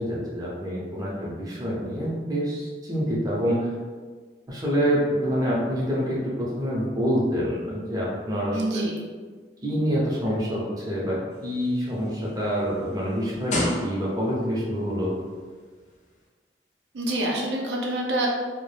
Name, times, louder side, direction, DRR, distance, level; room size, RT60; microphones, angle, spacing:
voice 1, 0.0-3.7 4.5-8.8 9.6-11.2 11.4-15.1, equal, 20° right, -5 dB, 0.5 m, -26 dB
voice 2, 8.5-9.0 16.9-18.3, right 1 dB, 75° right, -1 dB, 0.4 m, -26 dB
sound 1, 11.3-14.5 15.3-15.5, left 1 dB, 45° left, 0.4 m, -31 dB
2.2 x 2.0 x 3.1 m, 1.5 s
head